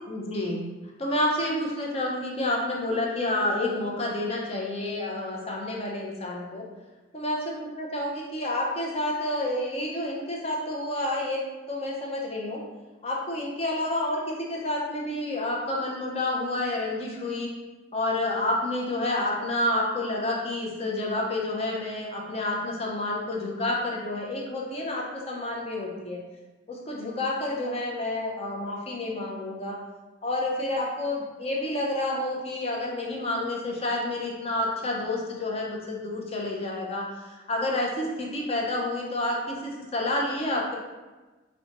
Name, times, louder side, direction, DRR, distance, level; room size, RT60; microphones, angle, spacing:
voice 1, 0.1-0.7 1.0-6.6 7.1-11.4 11.7-12.6 13.0-17.5 17.9-26.2 26.7-29.8 30.2-40.8, left 1 dB, 35° left, -2 dB, 0.6 m, -29 dB
4.2 x 2.1 x 2.8 m, 1.2 s
head